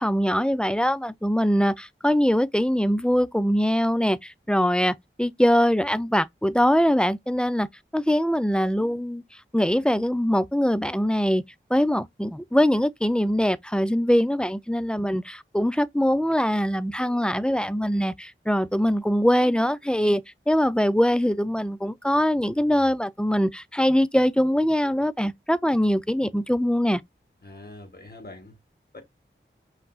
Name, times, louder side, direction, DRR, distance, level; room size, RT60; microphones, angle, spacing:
voice 1, 0.0-7.7 7.9-9.2 9.5-11.4 11.7-20.2 20.5-27.0, equal, 5° left, 0.5 m, -22 dB
voice 2, 27.4-28.6 28.9-29.0, left 2 dB, 50° left, 1.8 m, -43 dB
5.7 x 2.8 x 2.4 m
wide cardioid pair, 45°, 21 cm